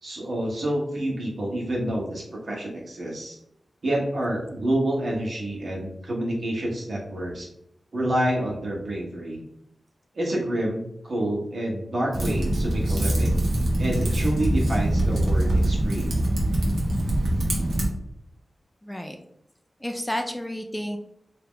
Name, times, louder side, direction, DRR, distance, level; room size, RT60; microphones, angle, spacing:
voice 1, 0.0-3.4 3.8-7.5 7.9-9.4 10.1-13.4 13.8-16.2, right 1 dB, 60° right, -2 dB, 1.2 m, -28 dB
Typing, 12.1-17.9, right 1 dB, 90° right, 1.1 m, -23 dB
voice 2, 18.8-19.2 19.8-21.0, equal, 10° left, 4 dB, 0.3 m, -31 dB
3.5 x 2.8 x 3.6 m, 0.76 s
wide cardioid pair, 125°, 0 cm